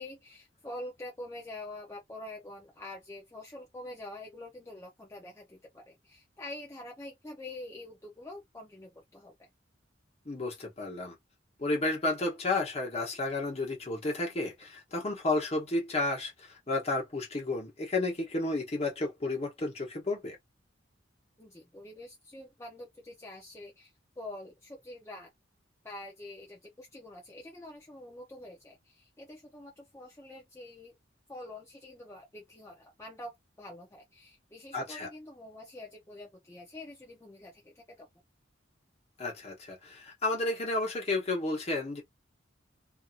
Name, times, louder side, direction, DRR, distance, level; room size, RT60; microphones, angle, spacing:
voice 1, 0.0-9.5 21.4-25.3 25.8-30.9 31.3-38.1, left 1 dB, 15° left, 0.6 m, -46 dB
voice 2, 10.2-11.2 11.6-20.4 34.7-35.1 39.2-42.0, left 2 dB, 35° left, 1.1 m, -32 dB
2.8 x 2.7 x 2.4 m
head